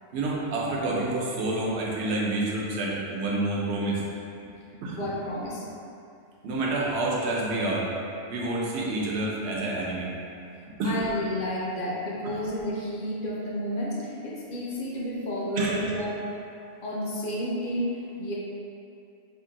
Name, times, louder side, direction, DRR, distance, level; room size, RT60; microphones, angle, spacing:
voice 1, 0.1-4.0 4.4-4.5 4.8-5.0 6.4-7.9 8.3-10.1 10.8-11.0 15.6-15.7, right 2 dB, 80° right, -4 dB, 0.9 m, -28 dB
voice 2, 5.0-5.7 10.8-16.2 16.8-18.3, equal, 60° left, -4 dB, 0.8 m, -31 dB
2.9 x 2.6 x 3.8 m, 2.6 s
omnidirectional pair, 1.1 m